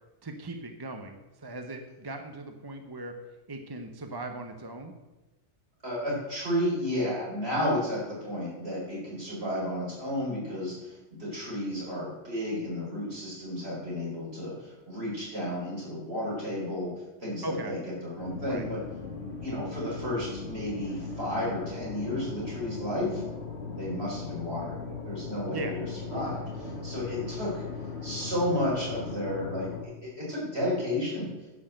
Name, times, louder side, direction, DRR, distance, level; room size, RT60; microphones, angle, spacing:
voice 1, 0.2-3.2 3.5-4.9 17.4-17.7 18.4-18.6 25.5-25.8, right 2 dB, 20° right, 6 dB, 0.8 m, -38 dB
voice 2, 5.8-16.9 17.2-18.8 19.4-23.2 23.8-27.6 28.0-29.7 30.0-31.3, left 1 dB, 55° right, -6 dB, 5.4 m, -32 dB
sound 1, 18.2-29.8, left 4 dB, 65° left, 1.9 m, -38 dB
11.0 x 6.3 x 7.8 m, 1.1 s
omnidirectional pair, 1.3 m